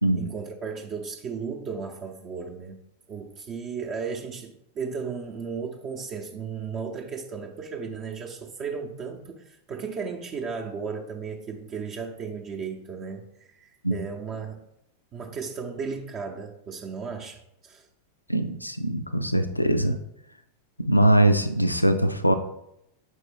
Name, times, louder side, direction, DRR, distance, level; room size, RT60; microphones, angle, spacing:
voice 1, 0.1-2.8 3.1-14.6 15.1-17.9, right 5 dB, 30° right, 1 dB, 0.6 m, -35 dB
voice 2, 18.3-19.9 20.8-22.3, right 1 dB, 90° left, 9 dB, 0.4 m, -22 dB
6.4 x 4.5 x 3.3 m, 0.80 s
figure-of-eight pair, 90°, 0 cm